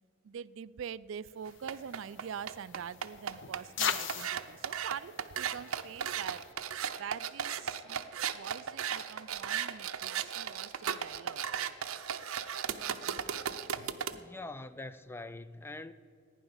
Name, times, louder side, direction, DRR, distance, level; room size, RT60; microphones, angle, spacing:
voice 1, 0.2-6.4 7.0-7.8 8.3-11.8 12.1-12.3, right 8 dB, 65° right, 0.3 m, -44 dB
sound 1, 1.4-6.5, left 7 dB, 60° left, 0.7 m, -40 dB
sound 2, 1.5-14.2, right 8 dB, 90° right, 0.7 m, -36 dB
voice 2, 14.1-15.9, left 2 dB, 10° left, 0.3 m, -44 dB
15.0 x 10.0 x 7.1 m
head